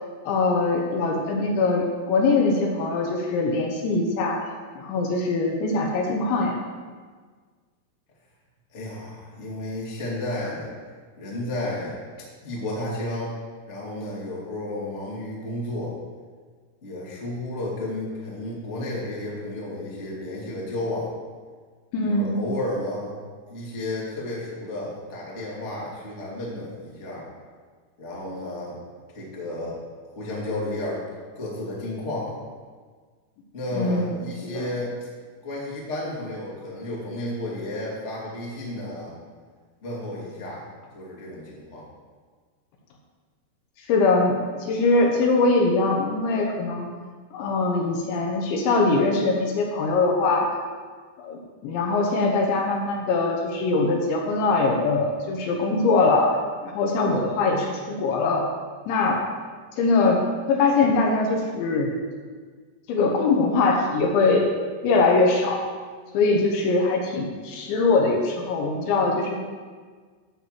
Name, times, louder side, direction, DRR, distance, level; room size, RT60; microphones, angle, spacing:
voice 1, 0.2-4.4 4.8-6.5 21.9-22.4 33.7-34.7 43.9-46.9 47.3-50.5 51.2-56.3 56.6-58.4 58.9-59.2 59.8-62.0 62.9-64.5 64.8-65.6 66.1-69.4, left 3 dB, 75° left, 1 dB, 3.1 m, -22 dB
voice 2, 8.7-10.7 11.2-12.0 12.4-13.3 13.7-15.9 16.8-21.1 22.1-23.2 23.5-27.3 28.0-28.8 29.1-29.8 30.1-31.0 31.3-32.4 33.5-34.9 35.4-39.1 39.8-40.6 40.9-41.9, left 1 dB, 40° left, -5 dB, 0.9 m, -32 dB
13.0 x 4.6 x 7.5 m, 1.5 s
omnidirectional pair, 5.9 m